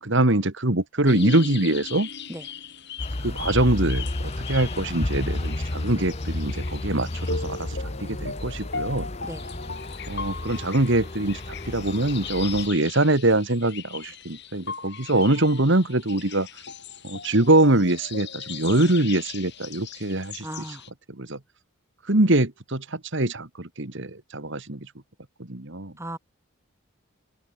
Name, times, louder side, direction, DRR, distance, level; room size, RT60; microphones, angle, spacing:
voice 1, 0.0-2.1 3.2-9.1 10.1-11.4 11.7-16.5 17.0-20.7 21.1-21.4 22.1-24.9 25.4-25.9, right 2 dB, 55° right, 2.0 m, -23 dB
sound 1, 1.1-20.9, left 5 dB, 50° left, 7.8 m, -38 dB
sound 2, 3.0-12.7, left 1 dB, 30° left, 0.9 m, -32 dB
voice 2, 20.4-20.8 26.0-26.2, right 1 dB, 10° right, 3.3 m, -36 dB
head